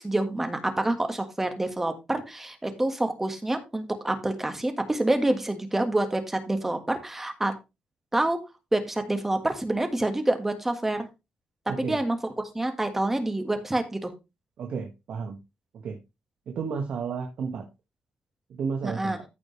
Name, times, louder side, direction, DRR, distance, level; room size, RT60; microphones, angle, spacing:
voice 1, 0.0-7.5 8.1-8.4 8.7-11.1 11.8-12.2 12.5-14.1 18.8-19.2, right 1 dB, 10° right, 6 dB, 1.6 m, -27 dB
voice 2, 11.7-12.0 14.6-15.4 15.7-16.0 16.5-17.6 18.5-19.2, right 5 dB, 65° right, 3 dB, 1.7 m, -32 dB
14.5 x 5.1 x 3.2 m, 0.25 s
cardioid pair, 140°, 3 cm